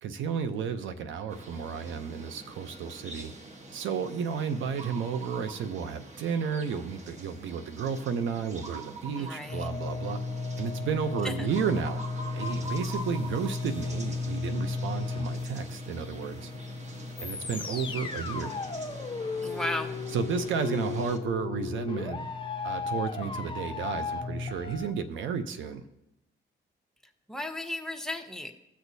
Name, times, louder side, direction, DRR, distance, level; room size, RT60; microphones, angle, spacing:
voice 1, 0.0-3.3 3.7-10.2 10.6-12.0 12.3-16.5 17.2-18.6 20.1-22.3 22.6-25.9, right 6 dB, 75° right, 9 dB, 0.7 m, -32 dB
sound 1, 1.3-21.2, right 2 dB, 35° right, 1.1 m, -45 dB
voice 2, 9.2-9.7 11.2-11.5 19.4-19.9 27.3-28.5, left 1 dB, 5° left, 3 dB, 1.0 m, -34 dB
sound 2, 9.5-24.9, left 4 dB, 25° left, 0.9 m, -35 dB
17.0 x 6.3 x 2.7 m, 0.88 s
cardioid pair, 90°, 20 cm